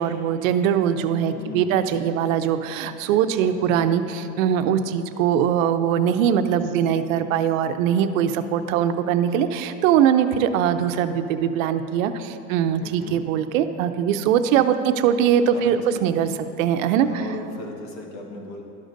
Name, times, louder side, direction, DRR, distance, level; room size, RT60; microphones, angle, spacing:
voice 1, 0.0-16.3 16.6-17.1, right 9 dB, 70° right, 10 dB, 0.6 m, -21 dB
voice 2, 1.3-1.8 3.4-3.8 12.8-13.2 15.5-16.0 17.0-18.6, left 3 dB, 55° left, 1 dB, 1.4 m, -37 dB
12.0 x 6.4 x 2.6 m, 2.7 s
supercardioid pair, 135°, 41 cm